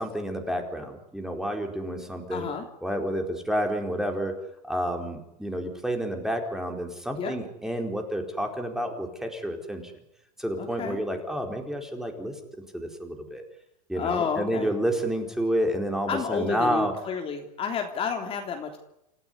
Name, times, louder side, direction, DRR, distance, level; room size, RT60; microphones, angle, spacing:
voice 1, 0.0-2.5 2.8-4.3 4.7-9.8 10.4-12.3 12.7-13.4 13.9-16.9, equal, ahead, 3 dB, 4.5 m, -29 dB
voice 2, 2.3-2.6 7.2-7.4 10.6-11.0 14.0-14.7 16.1-18.8, left 6 dB, 25° left, 3 dB, 3.3 m, -30 dB
28.5 x 15.5 x 10.0 m, 0.85 s
supercardioid pair, 130°, 21 cm